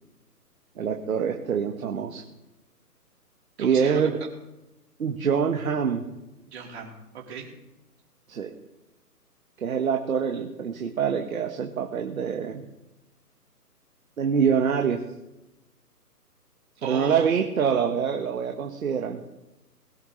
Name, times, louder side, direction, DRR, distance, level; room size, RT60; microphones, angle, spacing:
voice 1, 0.8-2.2 3.6-4.2 5.0-6.0 8.3-8.5 9.6-12.7 14.2-15.0 16.8-19.2, right 7 dB, 55° right, 3 dB, 1.5 m, -25 dB
voice 2, 3.6-4.1 6.5-7.5 16.8-17.3, right 6 dB, 40° right, -2 dB, 3.8 m, -36 dB
21.5 x 11.0 x 3.3 m, 0.97 s
figure-of-eight pair, 150°, 48 cm